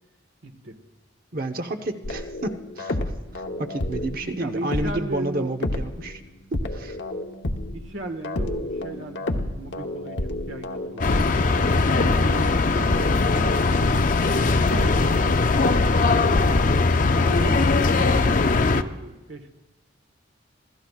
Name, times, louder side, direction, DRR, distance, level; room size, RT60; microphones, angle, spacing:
voice 1, 0.4-0.8 4.4-5.6 7.7-11.4 11.8-13.9 14.4-15.3 15.7-16.7 17.1-19.5, right 1 dB, 80° right, 5 dB, 1.5 m, -37 dB
voice 2, 1.3-3.1 3.6-6.2 6.5-7.0, right 2 dB, 50° right, 6 dB, 0.9 m, -30 dB
sound 1, 2.0-6.2 6.5-17.2, left 1 dB, 70° left, 1.0 m, -31 dB
sound 2, 11.0-18.8, left 3 dB, 45° left, 0.5 m, -20 dB
26.0 x 16.0 x 2.4 m, 1.1 s
head